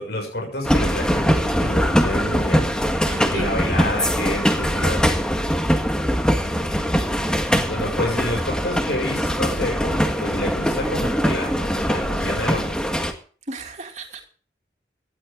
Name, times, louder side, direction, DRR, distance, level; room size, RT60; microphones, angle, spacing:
voice 1, 0.0-2.7 3.3-5.2 6.2-7.0 7.7-13.0, left 1 dB, 65° left, 2 dB, 7.0 m, -29 dB
sound 1, 0.6-13.1, equal, 5° left, 1.8 m, -22 dB
voice 2, 3.0-3.7 4.1-4.4 13.5-14.3, right 2 dB, 40° right, 3 dB, 3.0 m, -35 dB
18.0 x 12.0 x 3.9 m, 0.41 s
head